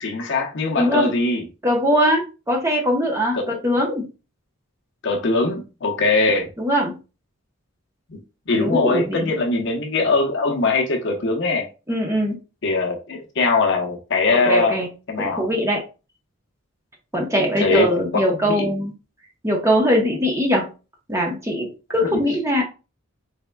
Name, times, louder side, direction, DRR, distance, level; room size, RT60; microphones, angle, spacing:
voice 1, 0.0-1.4 3.3-3.5 5.0-6.5 8.1-8.2 8.5-11.7 12.6-14.8 15.1-15.5 17.4-17.9 18.4-18.7 22.0-22.2, left 3 dB, 60° left, 0.8 m, -21 dB
voice 2, 0.8-1.1 1.6-4.1 6.6-7.0 8.5-9.3 11.9-12.4 14.3-14.9 15.2-15.8 17.1-18.9 19.4-20.7 21.1-22.6, equal, 15° right, 0.8 m, -21 dB
4.1 x 3.5 x 2.2 m
head